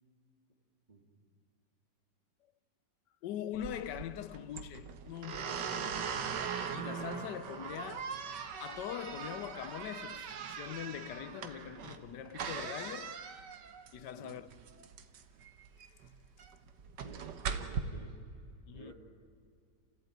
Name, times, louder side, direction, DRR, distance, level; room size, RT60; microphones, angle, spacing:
voice 1, 3.2-6.3 6.7-8.2 8.6-13.2 13.9-14.5 18.7-18.9, left 10 dB, 70° left, 1.3 m, -42 dB
sound 1, 3.5-17.8, right 6 dB, 70° right, 1.8 m, -41 dB
voice 2, 17.0-18.2 18.7-18.9, right 2 dB, 20° right, 2.5 m, -52 dB
28.5 x 16.0 x 9.2 m
omnidirectional pair, 2.0 m